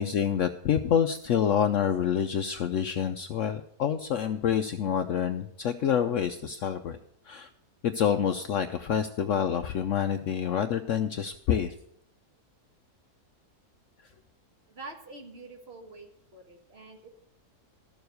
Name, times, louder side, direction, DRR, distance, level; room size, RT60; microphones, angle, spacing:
voice 1, 0.0-7.0 7.3-7.5 7.8-11.7, left 8 dB, 65° left, 9 dB, 0.8 m, -27 dB
voice 2, 14.7-17.1, right 3 dB, 40° right, 5 dB, 1.5 m, -46 dB
12.5 x 7.0 x 6.3 m, 0.73 s
omnidirectional pair, 1.7 m